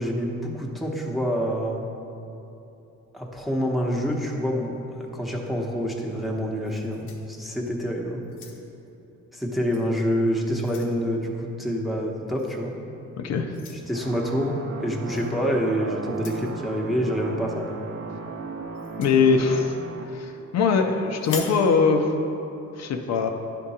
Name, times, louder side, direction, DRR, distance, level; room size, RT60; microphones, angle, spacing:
voice 1, 0.0-1.8 3.1-8.2 9.3-12.8 13.9-17.8, equal, ahead, -2 dB, 0.9 m, -27 dB
sound 1, 6.6-7.8 8.2-8.9 9.7-9.9 10.3-11.0 12.4-12.6 13.5-13.8 15.1-15.3 16.1-16.5 18.7-19.2 21.2-21.6, left 5 dB, 90° left, 0.9 m, -41 dB
voice 2, 13.2-13.5 19.0-19.7 20.1-22.1 22.8-23.3, left 5 dB, 60° left, 4 dB, 0.6 m, -21 dB
sound 2, 13.9-20.0, right 4 dB, 50° right, 0.7 m, -37 dB
10.5 x 3.7 x 4.2 m, 2.9 s
cardioid pair, 90°, 30 cm